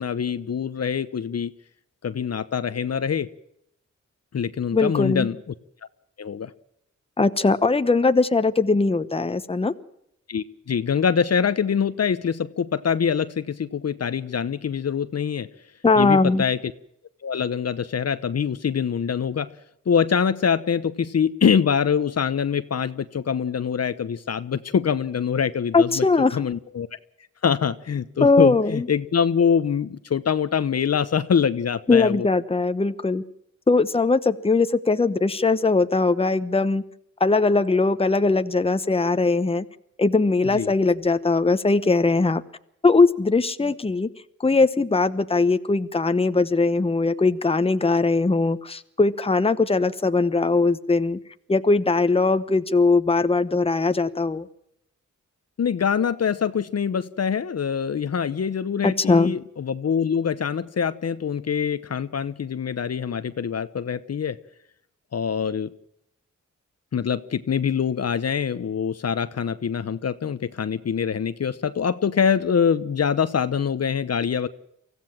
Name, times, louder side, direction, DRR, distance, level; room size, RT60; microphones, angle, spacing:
voice 1, 0.0-1.5 2.0-3.3 4.3-5.4 6.2-6.5 10.3-15.5 16.0-16.6 17.2-19.5 19.9-26.0 26.3-26.9 27.4-32.3 40.4-40.7 55.6-64.4 65.1-65.7 66.9-74.5, left 7 dB, 55° left, 12 dB, 0.9 m, -24 dB
voice 2, 4.7-5.3 7.2-9.7 15.8-16.4 25.7-26.4 28.2-28.9 31.9-33.2 33.7-36.8 37.2-39.6 40.0-42.4 42.8-44.1 44.4-51.2 51.5-54.4 58.8-59.3, left 3 dB, 20° left, 11 dB, 1.0 m, -20 dB
24.5 x 15.5 x 7.4 m, 0.77 s
wide cardioid pair, 100°, 30 cm